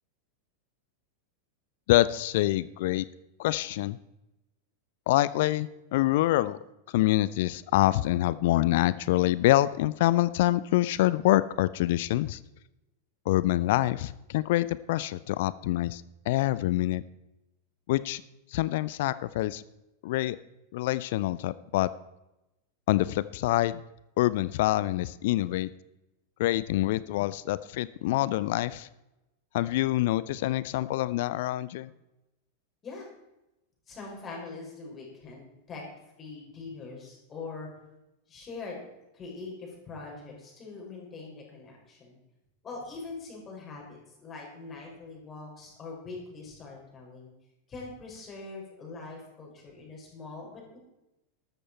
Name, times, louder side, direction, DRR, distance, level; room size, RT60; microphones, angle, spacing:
voice 1, 1.9-3.0 3.4-4.0 5.1-6.6 6.9-12.4 13.3-17.0 17.9-18.2 18.5-19.6 20.0-20.4 20.7-21.9 22.9-23.8 24.2-25.7 26.4-28.9 29.5-31.9, left 16 dB, 50° left, 18 dB, 0.5 m, -26 dB
voice 2, 33.9-35.8 36.2-37.7 38.3-38.8 39.1-42.2 42.6-47.3 47.7-50.8, left 3 dB, 25° left, -1 dB, 5.8 m, -42 dB
13.5 x 13.0 x 4.5 m, 0.94 s
figure-of-eight pair, 90°, 0 cm